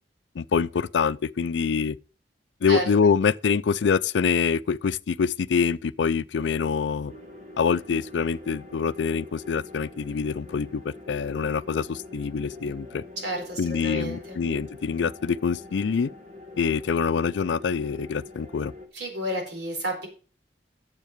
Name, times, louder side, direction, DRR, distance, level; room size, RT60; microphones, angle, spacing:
voice 1, 0.4-2.0 2.6-7.1 7.6-13.0 13.6-16.1 16.6-18.7, left 6 dB, 90° left, 0.4 m, -25 dB
sound 1, 7.1-18.9, left 2 dB, 45° right, 1.9 m, -45 dB
voice 2, 13.2-14.4 18.9-20.1, equal, 75° right, 4.3 m, -31 dB
9.2 x 7.5 x 5.0 m
head